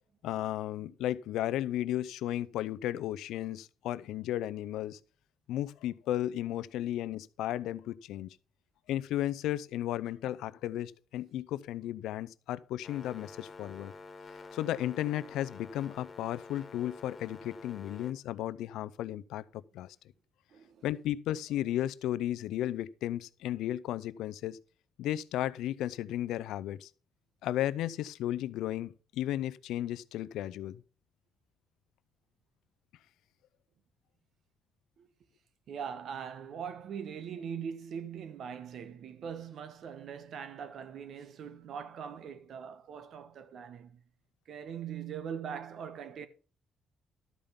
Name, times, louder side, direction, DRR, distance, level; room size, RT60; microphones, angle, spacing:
voice 1, 0.2-5.0 5.5-8.4 8.9-13.9 14.5-20.0 20.8-24.6 25.0-26.9 27.4-30.8, left 13 dB, 90° left, 0.5 m, -34 dB
sound 1, 12.8-18.1, left 4 dB, 30° left, 1.7 m, -49 dB
voice 2, 20.5-20.8 35.0-35.1 35.7-44.0 44.5-46.3, right 7 dB, 65° right, 1.1 m, -41 dB
12.5 x 5.2 x 5.7 m
cardioid pair, 90°, 0 cm